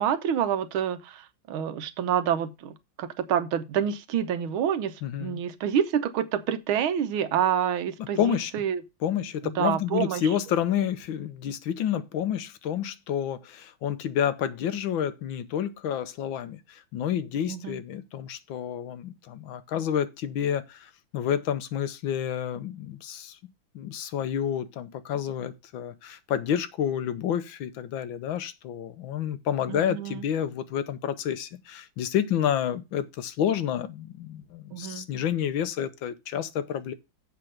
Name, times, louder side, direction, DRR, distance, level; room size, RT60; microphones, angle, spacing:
voice 1, 0.0-8.8 9.4-10.2 17.5-17.8 29.7-30.3 34.7-35.1, right 9 dB, 85° right, 1.7 m, -28 dB
voice 2, 5.0-5.4 8.2-8.5 9.0-23.4 23.7-36.9, left 9 dB, 75° left, 1.6 m, -29 dB
7.4 x 5.9 x 6.4 m
omnidirectional pair, 2.2 m